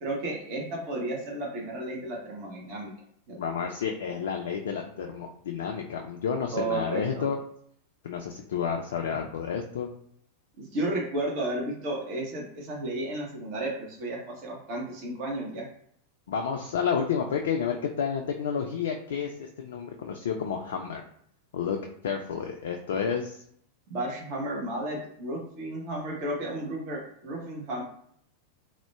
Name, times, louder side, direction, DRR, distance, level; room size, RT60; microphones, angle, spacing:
voice 1, 0.0-2.9 3.3-3.4 6.5-7.2 10.6-15.7 23.9-27.8, right 1 dB, 45° right, -2 dB, 0.7 m, -33 dB
voice 2, 3.4-7.4 8.0-9.9 16.3-21.0 21.5-23.4, left 7 dB, 60° left, 2 dB, 0.3 m, -30 dB
3.6 x 2.1 x 2.3 m, 0.66 s
figure-of-eight pair, 90°, 0 cm